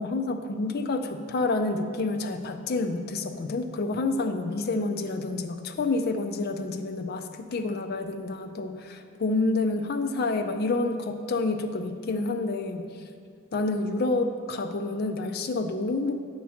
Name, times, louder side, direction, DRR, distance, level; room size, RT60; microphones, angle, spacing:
voice 1, 0.0-12.8 13.5-16.2, left 3 dB, 45° left, 7 dB, 0.4 m, -28 dB
8.3 x 3.0 x 5.6 m, 2.2 s
head